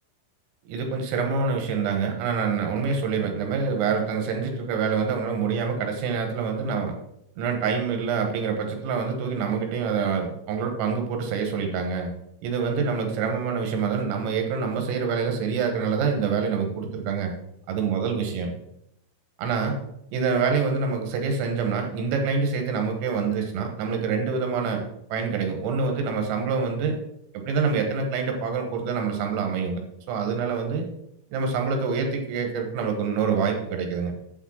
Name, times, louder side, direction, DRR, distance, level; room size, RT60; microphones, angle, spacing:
voice 1, 0.7-6.9 7.4-12.1 12.4-17.3 17.7-18.5 19.4-19.8 20.1-24.8 25.1-27.0 27.3-29.8 30.1-30.9 31.3-34.1, right 5 dB, 90° right, 3 dB, 3.7 m, -26 dB
7.8 x 6.3 x 4.4 m, 0.77 s
omnidirectional pair, 6.0 m